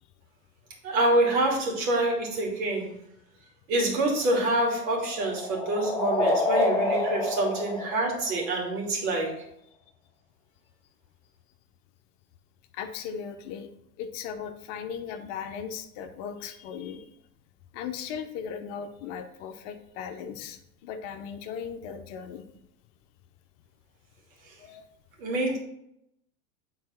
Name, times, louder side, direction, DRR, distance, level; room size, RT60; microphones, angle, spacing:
voice 1, 0.8-2.9 3.7-9.3 24.5-24.6 25.2-25.6, right 2 dB, 60° right, -1 dB, 2.7 m, -26 dB
sound 1, 4.1-8.8, left 2 dB, 5° left, 0.4 m, -28 dB
voice 2, 12.7-13.7 14.0-17.0 17.7-22.5 24.6-24.8, left 7 dB, 50° left, 7 dB, 0.8 m, -37 dB
7.6 x 4.1 x 4.3 m, 0.78 s
hypercardioid pair, 95°, 48 cm